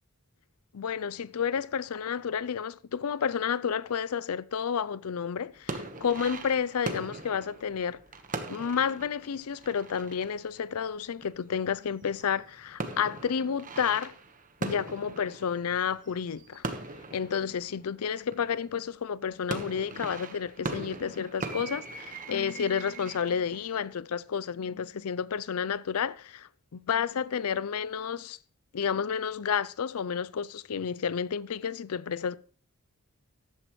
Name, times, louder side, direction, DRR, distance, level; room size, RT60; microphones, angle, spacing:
voice 1, 0.7-8.0 8.5-14.1 14.6-16.6 17.1-28.4 28.7-32.4, left 7 dB, 75° left, 0.5 m, -31 dB
sound 1, 5.6-11.7 12.0-18.7 19.2-23.8, right 3 dB, 40° right, 1.2 m, -40 dB
14.0 x 11.0 x 3.1 m
head